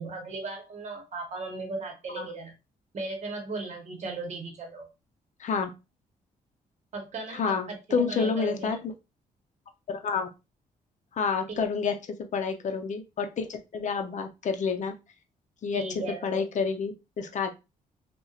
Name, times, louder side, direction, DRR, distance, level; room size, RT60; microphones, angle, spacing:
voice 1, 0.0-2.5 2.9-4.9 6.9-7.8 8.1-8.8 11.5-11.7 15.7-16.5, right 3 dB, 45° right, 0.9 m, -36 dB
voice 2, 5.4-5.7 7.3-8.8 9.9-10.3 11.2-11.9 12.3-14.9 15.6-15.8 16.2-17.5, left 5 dB, 50° left, 0.6 m, -29 dB
2.7 x 2.1 x 2.3 m
supercardioid pair, 65°, 16 cm